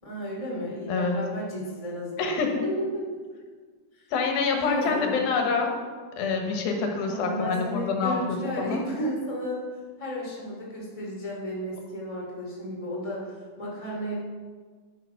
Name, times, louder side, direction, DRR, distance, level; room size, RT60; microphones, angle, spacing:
voice 1, 0.0-3.1 3.9-4.0 4.5-5.2 7.1-9.6 10.0-14.1, equal, 10° left, -4 dB, 2.5 m, -33 dB
voice 2, 2.2-2.6 4.1-5.8 6.2-8.2 8.6-8.8, left 4 dB, 90° left, 3 dB, 3.3 m, -26 dB
10.0 x 10.0 x 5.9 m, 1.5 s
omnidirectional pair, 4.1 m